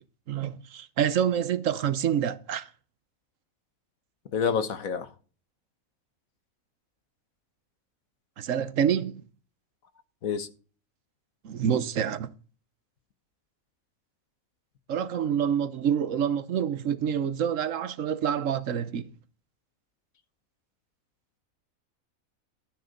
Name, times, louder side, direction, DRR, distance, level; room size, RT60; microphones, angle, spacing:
voice 1, 0.3-2.7 8.4-9.2 11.4-12.3 14.9-19.1, right 8 dB, 70° right, 1.2 m, -27 dB
voice 2, 4.3-5.1 10.2-10.5, left 6 dB, 90° left, 1.7 m, -27 dB
13.0 x 6.6 x 5.1 m
omnidirectional pair, 1.4 m